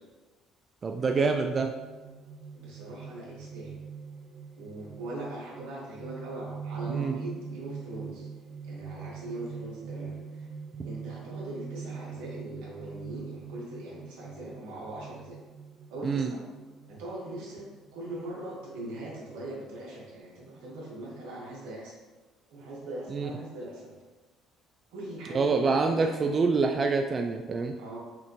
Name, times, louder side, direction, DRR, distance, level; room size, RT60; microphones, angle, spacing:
voice 1, 0.8-1.7 6.9-7.2 16.0-16.3 23.1-23.3 25.3-27.7, right 4 dB, 35° right, 4 dB, 0.3 m, -26 dB
sound 1, 1.0-20.2, right 6 dB, 55° right, 0.7 m, -43 dB
voice 2, 2.5-3.8 4.6-8.3 8.6-10.5 10.8-15.4 15.9-16.4 16.9-21.9 22.5-23.9 24.9-26.3 27.8-28.0, right 1 dB, 90° right, -4 dB, 1.3 m, -41 dB
5.8 x 2.6 x 2.9 m, 1.3 s
supercardioid pair, 85°, 0 cm